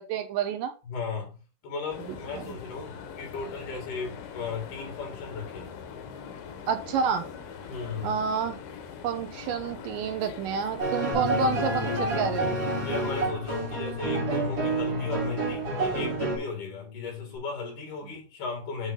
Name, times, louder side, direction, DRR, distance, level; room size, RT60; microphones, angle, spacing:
voice 1, 0.0-0.7 2.4-2.5 6.7-7.2 8.0-8.6 9.0-12.5, right 7 dB, 80° right, 2.4 m, -29 dB
voice 2, 0.8-1.4 1.6-5.7 7.7-8.2 12.8-18.9, left 4 dB, 65° left, 4.1 m, -36 dB
sound 1, 1.9-13.3, left 6 dB, 80° left, 2.9 m, -42 dB
sound 2, 10.8-16.4, right 2 dB, 35° right, 1.7 m, -29 dB
Bass guitar, 11.1-17.4, left 6 dB, 45° left, 2.5 m, -39 dB
8.3 x 3.1 x 5.3 m
omnidirectional pair, 4.0 m